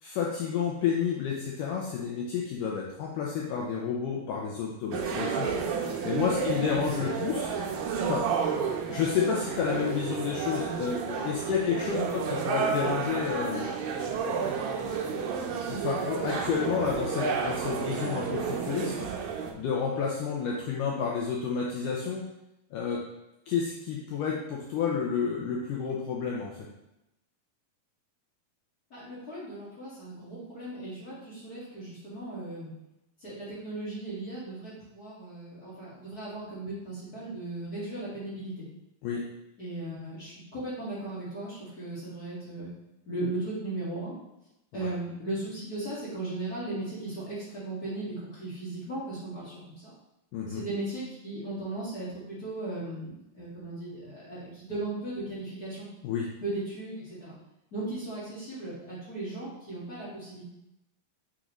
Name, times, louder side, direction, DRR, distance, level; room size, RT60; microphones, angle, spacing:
voice 1, 0.0-5.5 6.0-7.5 8.1-8.3 8.9-13.7 14.8-15.0 15.7-19.1 19.5-22.2 22.7-23.0 23.5-26.5 39.0-39.3 44.7-44.9 50.3-50.6 56.0-56.3, left 6 dB, 75° left, -3 dB, 2.0 m, -30 dB
sound 1, 4.9-19.5, right 6 dB, 80° right, 2.3 m, -31 dB
voice 2, 6.3-6.8 11.9-12.1 28.9-32.7 33.2-38.6 39.6-42.7 43.0-44.1 44.7-49.9 50.5-55.9 56.4-57.3 57.7-60.4, right 2 dB, 35° left, -8 dB, 1.5 m, -37 dB
6.6 x 6.2 x 3.1 m, 0.88 s
omnidirectional pair, 4.4 m